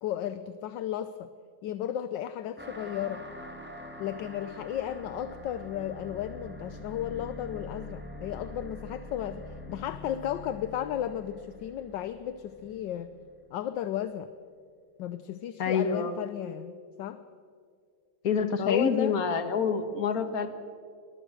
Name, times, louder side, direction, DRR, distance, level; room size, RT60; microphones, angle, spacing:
voice 1, 0.0-1.3 1.6-3.2 4.0-9.4 9.7-13.1 13.5-14.3 15.0-17.2 18.6-19.1, left 10 dB, 70° left, 12 dB, 1.3 m, -34 dB
sound 1, 2.6-13.6, left 1 dB, 5° right, 1.8 m, -45 dB
voice 2, 15.6-16.1 18.2-20.5, left 6 dB, 50° left, 9 dB, 1.8 m, -27 dB
22.0 x 20.0 x 6.4 m, 2.2 s
omnidirectional pair, 2.2 m